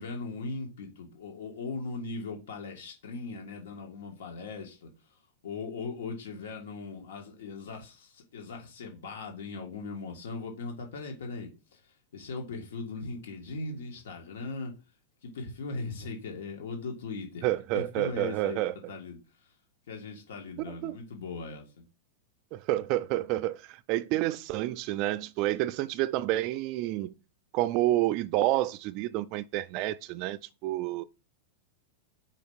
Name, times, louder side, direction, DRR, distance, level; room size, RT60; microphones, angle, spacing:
voice 1, 0.0-4.9 5.4-14.7 15.2-17.5 17.7-18.6 18.9-19.5 19.9-21.8, left 3 dB, 85° left, 1.7 m, -39 dB
voice 2, 17.4-18.7 20.7-21.0 22.5-27.1 27.5-31.0, right 15 dB, 35° right, 0.3 m, -29 dB
5.0 x 4.4 x 5.5 m
supercardioid pair, 165°, 0 cm